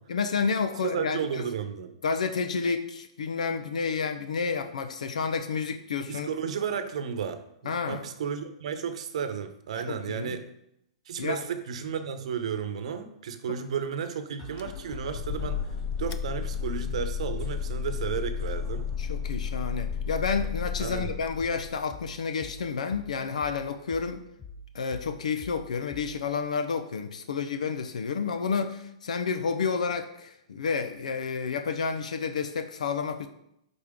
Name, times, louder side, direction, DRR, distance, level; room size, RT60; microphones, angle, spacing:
voice 1, 0.1-1.5 2.0-6.3 7.6-8.1 9.9-10.4 11.2-11.4 13.5-13.6 19.0-24.2 24.7-33.3, left 5 dB, 80° left, 8 dB, 0.9 m, -30 dB
voice 2, 0.8-1.9 6.1-10.5 11.1-15.6 16.0-18.9 20.8-21.2, right 7 dB, 65° right, 9 dB, 0.9 m, -33 dB
sound 1, 14.4-26.4, left 2 dB, 10° left, 2.9 m, -47 dB
sound 2, 14.6-22.0, left 7 dB, 30° left, 0.4 m, -33 dB
11.5 x 4.4 x 3.7 m, 0.78 s
hypercardioid pair, 150°, 4 cm